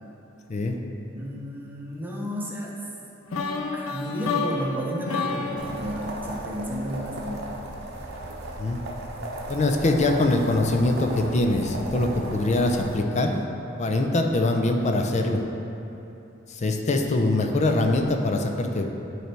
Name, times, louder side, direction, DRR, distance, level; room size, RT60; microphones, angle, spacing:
voice 1, 1.1-2.8 3.7-7.5, equal, 10° right, -4 dB, 0.7 m, -32 dB
sound 1, 3.3-7.3, left 4 dB, 90° left, 0.5 m, -31 dB
sound 2, 5.6-13.0, right 1 dB, 55° right, 0.8 m, -36 dB
voice 2, 9.5-13.4 13.8-15.4 16.5-18.9, left 2 dB, 35° left, 3 dB, 0.5 m, -23 dB
9.2 x 3.3 x 4.5 m, 2.9 s
head